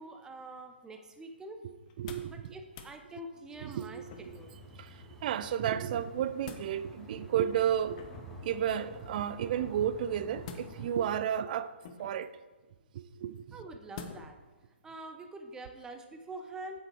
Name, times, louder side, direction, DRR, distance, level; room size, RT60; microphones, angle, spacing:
voice 1, 0.0-1.6 2.2-4.0 4.3-4.6 13.5-14.4 14.8-16.8, right 2 dB, 10° right, 0.9 m, -45 dB
sound 1, 1.8-2.4 2.7-3.0 4.1-4.5 6.0-6.7 7.9-8.4 10.4-11.0 11.8-12.3 13.9-14.4 14.9-15.0, left 6 dB, 40° left, 0.9 m, -47 dB
voice 2, 2.0-2.3 3.6-4.0 4.8-8.0 8.4-11.7 12.0-12.3 12.9-13.6, right 9 dB, 45° right, 0.5 m, -32 dB
sound 2, 3.5-11.2, left 1 dB, 5° left, 1.6 m, -50 dB
8.1 x 7.6 x 4.7 m
hypercardioid pair, 135°, 6 cm